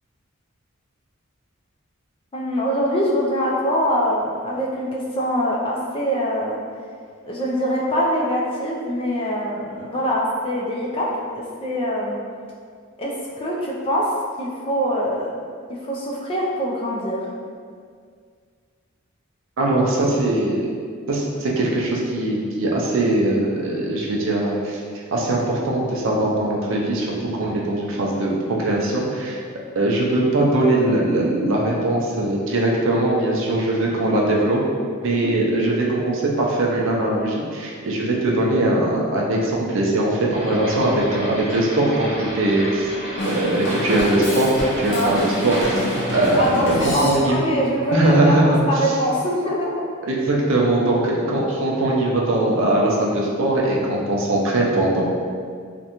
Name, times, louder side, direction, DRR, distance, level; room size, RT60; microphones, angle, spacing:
voice 1, 2.3-6.6 7.2-11.1 11.3-12.2 13.0-14.0 14.4-15.3 15.7-17.3 35.2-35.4 44.9-45.1 46.3-49.8, equal, 25° left, -3 dB, 0.3 m, -23 dB
voice 2, 19.6-20.5 21.1-24.8 25.1-29.4 29.8-34.6 35.0-42.1 42.3-42.9 43.3-44.5 44.8-45.8 46.1-47.4 47.9-48.6 50.1-55.0, right 1 dB, 60° right, -3 dB, 0.4 m, -21 dB
sound 1, 40.3-46.5, equal, 30° right, 0.8 m, -32 dB
Drum kit / Drum, 43.2-47.5, equal, 55° left, 0.7 m, -27 dB
2.5 x 2.1 x 2.8 m, 2.1 s
head